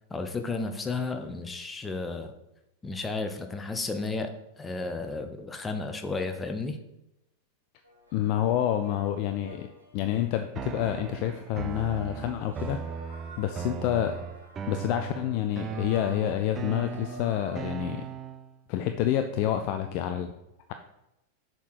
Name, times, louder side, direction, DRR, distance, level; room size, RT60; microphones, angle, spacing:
voice 1, 0.1-2.3 2.8-4.3 4.6-6.8, left 3 dB, 15° left, 6 dB, 0.8 m, -33 dB
sound 1, 7.8-17.6, right 1 dB, 80° right, 1.6 m, -50 dB
voice 2, 8.1-9.7 9.9-13.0 13.4-14.2 14.7-18.0 18.7-20.3, left 11 dB, 45° left, 7 dB, 0.4 m, -28 dB
sound 2, 10.5-18.5, right 8 dB, 25° right, 0.4 m, -38 dB
6.7 x 4.5 x 4.8 m, 0.89 s
figure-of-eight pair, 90°, 0 cm